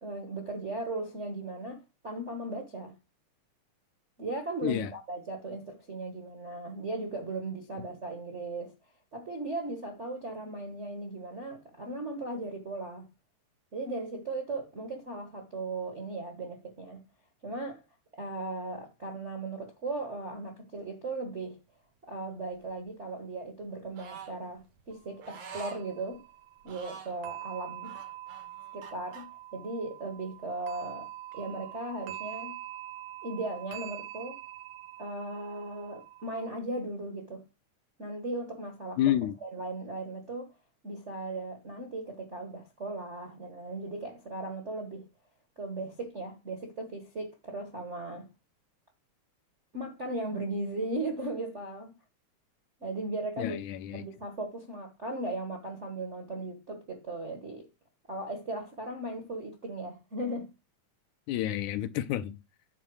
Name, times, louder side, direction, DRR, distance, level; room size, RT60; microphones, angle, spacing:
voice 1, 0.0-2.9 4.2-8.7 9.1-13.1 13.7-17.0 17.4-17.8 18.2-21.6 22.0-26.2 26.6-28.0 28.7-32.6 33.2-34.4 35.0-37.4 38.0-39.0 39.4-40.5 40.8-45.1 45.6-48.3 49.7-51.9 52.8-53.6 53.9-57.7 58.1-60.5, right 2 dB, 45° right, 0.9 m, -37 dB
sound 1, 22.5-22.6 24.6-25.3 25.5-36.6, right 13 dB, 70° right, 2.2 m, -45 dB
sound 2, 23.9-24.3 25.2-25.8 26.6-27.2 27.8-29.2, right 6 dB, 85° right, 3.7 m, -45 dB
voice 2, 39.0-39.4 53.4-54.1 61.3-62.4, left 12 dB, 80° left, 2.1 m, -29 dB
9.3 x 4.1 x 6.2 m
omnidirectional pair, 3.5 m